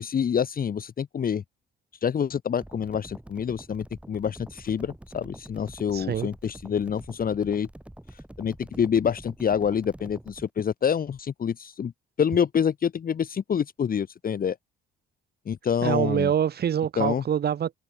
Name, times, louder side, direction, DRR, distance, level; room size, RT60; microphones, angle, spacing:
voice 1, 0.0-1.4 2.0-7.7 8.1-11.9 12.2-14.6 15.5-16.3 17.0-17.2, left 7 dB, 45° left, 1.7 m, -27 dB
sound 1, 2.6-10.5, right 1 dB, 5° right, 3.6 m, -46 dB
voice 2, 5.9-6.3 15.8-17.7, right 9 dB, 55° right, 1.4 m, -25 dB
open air
cardioid pair, 90°, 20 cm